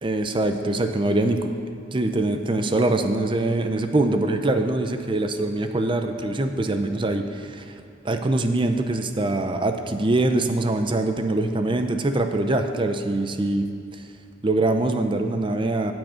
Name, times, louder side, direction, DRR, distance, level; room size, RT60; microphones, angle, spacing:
voice 1, 0.0-1.4 1.9-7.7 8.0-13.7 14.4-15.9, right 2 dB, 25° right, 7 dB, 0.6 m, -23 dB
18.0 x 6.2 x 5.0 m, 2.4 s
head